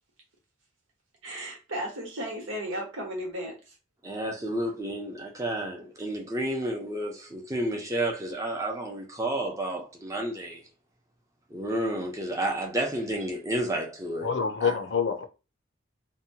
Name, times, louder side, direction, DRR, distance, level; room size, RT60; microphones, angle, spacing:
voice 1, 1.2-3.7, equal, 85° right, 1.1 m, -35 dB
voice 2, 4.0-10.6 11.5-14.3 14.6-14.8, right 1 dB, 15° right, 0.6 m, -31 dB
voice 3, 14.2-15.3, left 6 dB, 65° left, 0.5 m, -26 dB
2.8 x 2.2 x 2.7 m
head